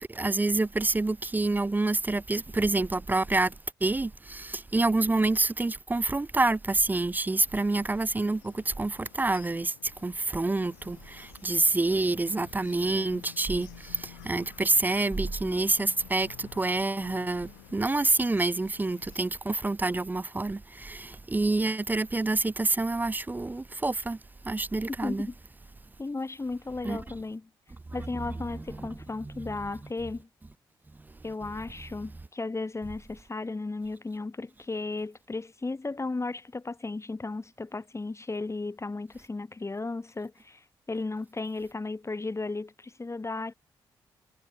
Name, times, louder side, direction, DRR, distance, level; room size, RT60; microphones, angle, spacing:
voice 1, 0.1-3.5 3.8-24.2 24.4-25.3 26.8-27.0 28.5-28.9 29.2-29.6, right 2 dB, 15° right, 0.4 m, -27 dB
sound 1, 7.3-19.3, left 22 dB, 90° left, 6.2 m, -52 dB
voice 2, 25.0-25.3 26.0-27.5 27.9-30.3 31.2-40.6 40.9-43.5, left 3 dB, 25° left, 1.7 m, -35 dB
hypercardioid pair, 40°, 11 cm